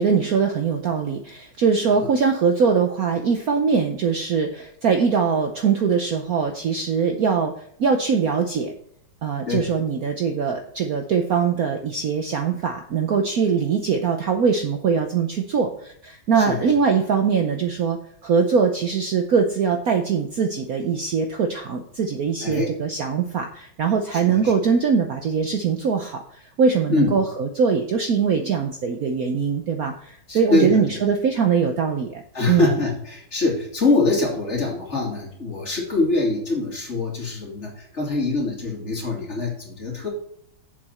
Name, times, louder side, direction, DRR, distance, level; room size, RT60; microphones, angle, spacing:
voice 1, 0.0-7.5 7.8-8.7 9.2-32.8, right 6 dB, 60° right, 5 dB, 1.0 m, -22 dB
voice 2, 22.4-22.8 24.1-24.5 26.9-27.1 30.3-31.0 32.3-40.1, left 3 dB, 35° left, -2 dB, 2.7 m, -24 dB
7.9 x 7.4 x 4.3 m, 0.65 s
omnidirectional pair, 2.2 m